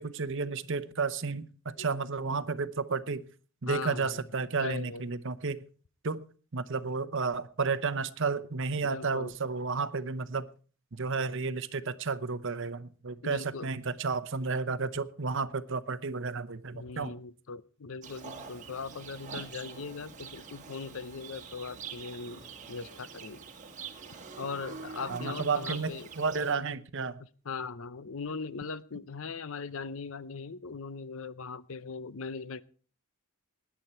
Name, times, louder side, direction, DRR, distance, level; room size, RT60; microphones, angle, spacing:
voice 1, 0.0-1.5 1.8-3.3 3.6-5.6 6.0-6.2 6.5-10.5 10.9-17.1 25.1-27.2, right 4 dB, 55° right, 14 dB, 0.8 m, -32 dB
voice 2, 3.7-4.2 4.6-5.1 8.8-9.3 13.2-13.7 16.7-23.4 24.4-26.1 27.2-32.6, left 4 dB, 60° left, 16 dB, 0.7 m, -40 dB
Livestock farm animals working animals, 18.0-26.5, right 5 dB, 35° right, 1.7 m, -45 dB
20.0 x 10.0 x 4.4 m, 0.41 s
head